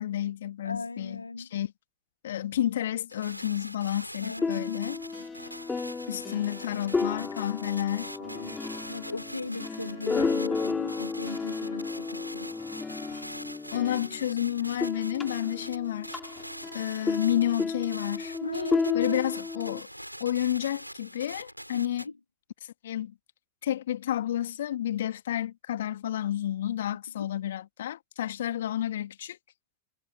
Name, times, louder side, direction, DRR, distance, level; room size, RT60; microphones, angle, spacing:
voice 1, 0.0-1.7 2.2-5.0 6.1-8.2 13.7-16.2 16.7-18.3 18.9-19.9 20.2-22.1 22.6-23.1 23.6-29.4, left 11 dB, 60° left, 2.5 m, -30 dB
voice 2, 0.6-1.5 4.2-5.0 8.2-8.6 8.9-12.5 18.4-19.3 21.7-22.1 27.2-27.3, left 3 dB, 80° left, 2.9 m, -37 dB
sound 1, 3.1-22.1, equal, 90° right, 7.6 m, -44 dB
sound 2, 4.4-14.4 14.7-19.8, left 4 dB, 15° left, 6.3 m, -33 dB
figure-of-eight pair, 90°, 0 cm